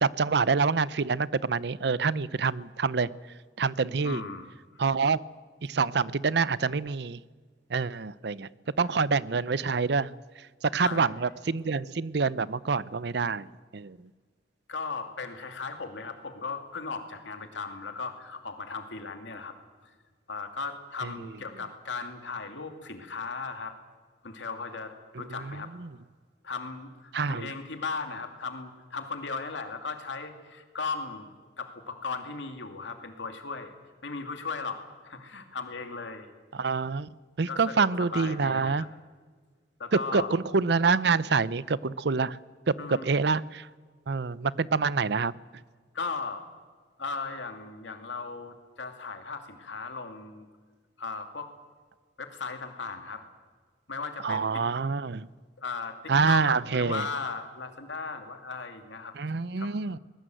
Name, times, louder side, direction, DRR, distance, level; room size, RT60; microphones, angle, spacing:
voice 1, 0.0-3.1 3.6-4.2 4.8-5.2 5.6-7.2 7.7-8.5 8.8-10.1 10.6-13.5 13.7-14.0 25.1-25.9 27.1-27.5 36.5-37.1 37.4-38.8 40.1-42.4 42.9-43.7 44.1-45.3 54.2-55.3 56.1-57.0 59.2-60.0, right 4 dB, 65° right, 19 dB, 0.6 m, -26 dB
voice 2, 4.0-4.5 10.8-11.2 14.7-19.5 19.8-19.9 20.3-23.7 24.2-25.7 26.4-31.3 31.6-33.7 34.0-36.3 37.5-38.9 39.8-40.3 42.8-43.1 45.9-46.4 47.0-50.5 51.0-51.5 52.2-53.2 53.9-54.6 55.6-59.1 59.6-59.7, left 4 dB, 85° left, 6 dB, 2.6 m, -37 dB
22.0 x 20.5 x 7.8 m, 1.5 s
head